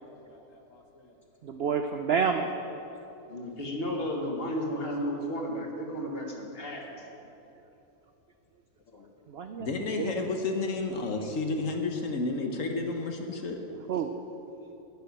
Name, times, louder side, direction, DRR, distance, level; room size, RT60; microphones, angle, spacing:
voice 1, 0.7-1.1 3.6-3.7 8.9-9.1 9.6-13.6, left 3 dB, 60° left, 4 dB, 1.3 m, -32 dB
voice 2, 1.4-2.5 9.3-11.1 13.9-14.1, right 6 dB, 70° right, 7 dB, 0.5 m, -30 dB
voice 3, 3.3-6.9, equal, 40° left, 1 dB, 1.6 m, -33 dB
10.5 x 7.0 x 9.2 m, 3.0 s
omnidirectional pair, 1.7 m